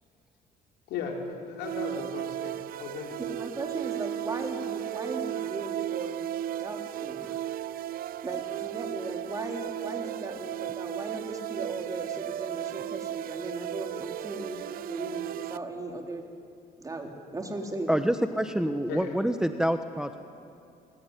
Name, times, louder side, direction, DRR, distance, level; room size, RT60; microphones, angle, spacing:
voice 1, 0.9-3.2 18.9-19.1, left 5 dB, 85° left, 1 dB, 4.7 m, -36 dB
sound 1, 1.6-15.6, right 12 dB, 60° right, 0.6 m, -35 dB
voice 2, 3.2-6.2 6.6-7.2 8.2-14.6 14.9-16.2 16.8-17.9, right 2 dB, 20° right, 2 dB, 3.8 m, -37 dB
voice 3, 17.9-20.2, right 1 dB, 5° right, 8 dB, 1.1 m, -27 dB
28.0 x 21.0 x 10.0 m, 2.5 s
cardioid pair, 110°, 17 cm